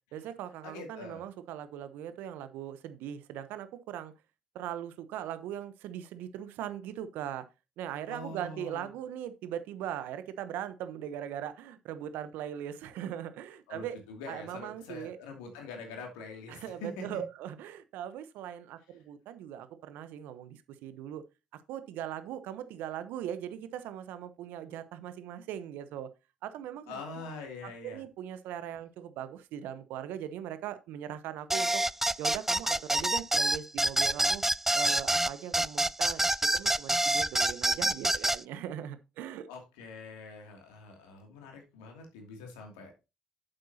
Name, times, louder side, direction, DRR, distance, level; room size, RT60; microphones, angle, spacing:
voice 1, 0.1-4.1 4.5-7.5 7.8-14.0 14.3-15.2 16.5-21.2 21.5-26.1 26.4-27.0 27.6-31.8 32.2-34.4 34.7-39.5, right 10 dB, 70° right, 1.0 m, -40 dB
voice 2, 0.6-1.2 8.1-8.9 13.7-17.2 26.9-28.0 39.5-42.9, left 3 dB, 80° left, 2.6 m, -44 dB
sound 1, 31.5-38.4, right 1 dB, 10° right, 0.4 m, -27 dB
9.0 x 7.7 x 2.8 m
hypercardioid pair, 55°, 3 cm